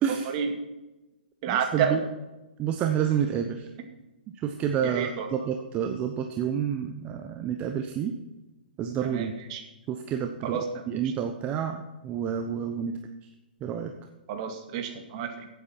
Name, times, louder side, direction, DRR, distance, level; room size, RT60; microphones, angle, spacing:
voice 1, 0.1-0.5 1.4-2.0 4.8-5.5 9.0-9.6 10.4-11.1 14.3-15.5, right 7 dB, 40° right, 5 dB, 2.2 m, -30 dB
voice 2, 1.5-2.0 2.6-3.6 4.4-8.1 8.8-9.3 9.9-12.9 13.6-13.9, right 8 dB, 25° right, 5 dB, 0.9 m, -29 dB
15.5 x 8.3 x 4.5 m, 1.0 s
hypercardioid pair, 130°, 5 cm